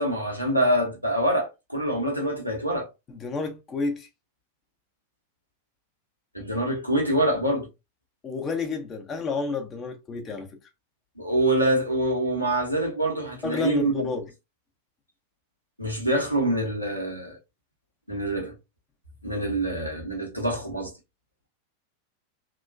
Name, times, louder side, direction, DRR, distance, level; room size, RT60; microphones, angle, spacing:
voice 1, 0.0-2.9 6.3-7.7 11.2-14.0 15.8-17.4 18.1-18.5 19.2-20.9, right 1 dB, 90° left, 0.8 m, -25 dB
voice 2, 3.1-4.1 8.2-10.5 13.4-14.3, left 3 dB, 25° left, 0.6 m, -30 dB
3.0 x 2.1 x 2.5 m
figure-of-eight pair, 90°, 0 cm